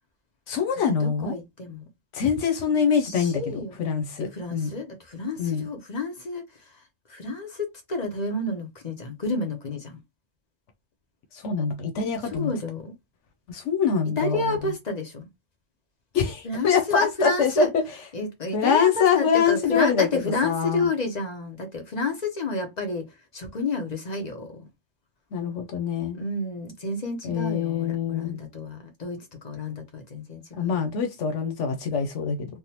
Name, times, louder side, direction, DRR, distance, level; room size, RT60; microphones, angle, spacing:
voice 1, 0.5-1.4 2.1-4.7 5.4-5.7 11.4-12.5 13.5-14.4 16.1-17.8 18.5-20.1 20.4-20.9 25.3-26.2 27.2-28.4 30.6-32.5, left 6 dB, 85° left, 1.0 m, -24 dB
voice 2, 1.0-1.8 3.0-3.8 4.2-6.8 7.1-10.0 12.3-12.9 14.2-15.3 16.4-17.7 18.1-24.7 26.1-30.8, left 2 dB, 40° left, 0.8 m, -30 dB
3.5 x 2.1 x 2.8 m
omnidirectional pair, 1.2 m